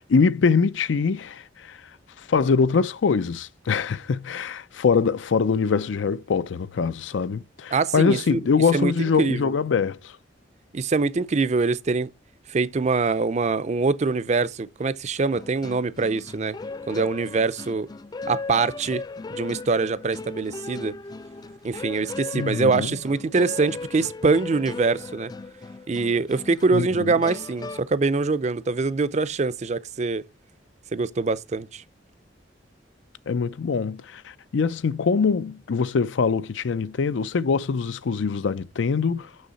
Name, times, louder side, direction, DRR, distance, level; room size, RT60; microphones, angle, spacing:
voice 1, 0.0-1.8 2.2-10.2 22.3-23.0 26.7-27.1 33.3-39.3, left 5 dB, 85° left, 0.5 m, -23 dB
voice 2, 7.7-8.4 8.7-8.9 9.2-9.5 10.7-12.1 12.5-16.6 16.9-17.9 18.3-19.0 19.3-21.0 21.6-25.3 25.9-30.2 30.9-31.8, right 4 dB, 40° right, 0.5 m, -24 dB
sound 1, 15.3-27.8, left 3 dB, 20° left, 0.3 m, -37 dB
6.4 x 6.4 x 4.0 m
head